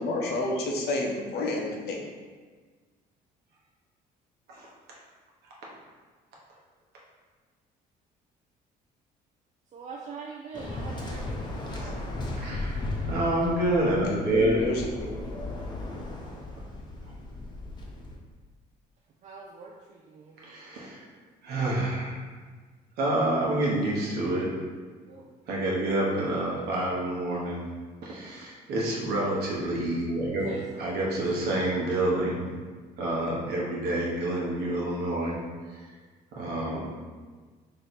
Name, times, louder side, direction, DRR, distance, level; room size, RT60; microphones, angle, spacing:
voice 1, 0.0-2.0 13.9-15.5, left 2 dB, 75° left, 0 dB, 0.7 m, -30 dB
voice 2, 9.7-12.3 19.2-20.4 25.1-25.3 30.4-30.8, right 4 dB, 45° right, -2 dB, 0.4 m, -44 dB
Waves surf, 10.5-18.2, left 2 dB, 25° left, 0.6 m, -36 dB
voice 3, 12.4-14.6 17.0-17.1 20.4-21.1 21.4-22.2 23.0-24.5 25.5-27.6 28.0-30.5 30.8-32.4 33.0-35.4 35.7-35.9 36.3-36.9, right 1 dB, 70° right, -4 dB, 1.0 m, -28 dB
3.3 x 2.7 x 4.1 m, 1.5 s
cardioid pair, 110°, 17 cm